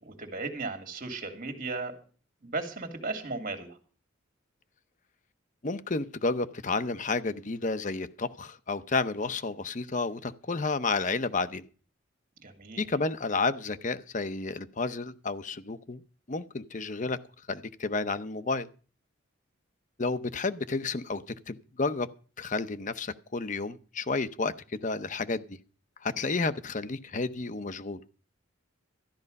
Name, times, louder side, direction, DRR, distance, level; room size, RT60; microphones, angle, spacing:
voice 1, 0.0-1.9 2.4-3.8 12.4-12.8, right 3 dB, 45° right, 2.7 m, -36 dB
voice 2, 5.6-11.6 12.8-16.0 16.3-17.2 17.5-18.7 20.0-22.1 22.4-24.5 24.8-25.6 26.0-28.0, left 3 dB, 40° left, 0.8 m, -31 dB
13.5 x 11.0 x 5.3 m
head